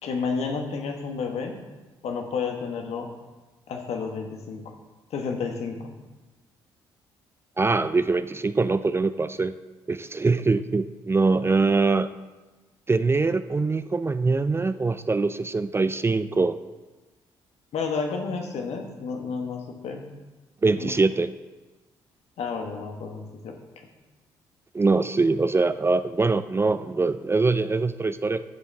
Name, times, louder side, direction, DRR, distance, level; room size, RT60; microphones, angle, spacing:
voice 1, 0.0-1.6 2.0-3.1 3.7-4.6 5.1-5.9 17.7-20.0 20.8-20.9 22.4-23.9, left 5 dB, 60° left, 4 dB, 1.3 m, -31 dB
voice 2, 7.6-9.5 9.9-12.2 12.9-16.6 20.6-21.3 24.7-28.4, right 3 dB, 20° right, 13 dB, 0.4 m, -23 dB
11.0 x 7.3 x 3.5 m, 1.2 s
hypercardioid pair, 50°, 12 cm